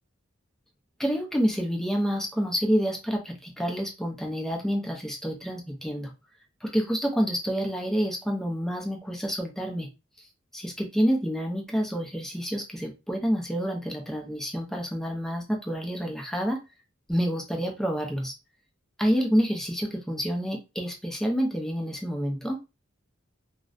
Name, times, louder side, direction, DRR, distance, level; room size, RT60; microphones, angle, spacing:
voice 1, 1.0-6.1 6.6-9.9 10.5-16.6 17.1-18.3 19.0-22.6, equal, ahead, 1 dB, 0.5 m, -28 dB
2.5 x 2.1 x 2.4 m, 0.27 s
head